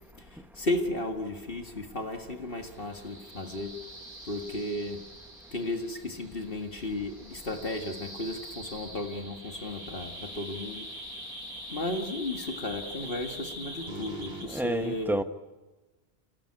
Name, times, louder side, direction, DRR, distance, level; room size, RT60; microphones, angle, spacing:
voice 1, 0.2-3.8 4.2-5.0 5.5-10.9 11.7-15.2, left 1 dB, 60° left, 2.0 m, -34 dB
sound 1, 2.7-14.4, equal, 45° right, 5.5 m, -43 dB
voice 2, 14.5-15.2, right 1 dB, ahead, 1.0 m, -29 dB
28.5 x 18.5 x 9.9 m
omnidirectional pair, 1.1 m